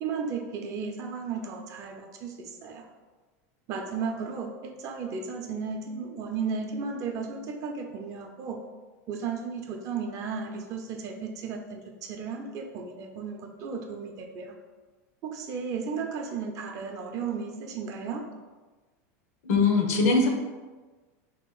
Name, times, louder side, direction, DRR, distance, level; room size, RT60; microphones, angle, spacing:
voice 1, 0.0-2.8 3.7-8.6 9.1-14.5 15.2-18.3, right 5 dB, 40° right, 3 dB, 0.5 m, -34 dB
voice 2, 19.4-20.3, left 3 dB, 75° left, 2 dB, 0.8 m, -21 dB
3.0 x 2.8 x 3.8 m, 1.3 s
supercardioid pair, 135°, 8 cm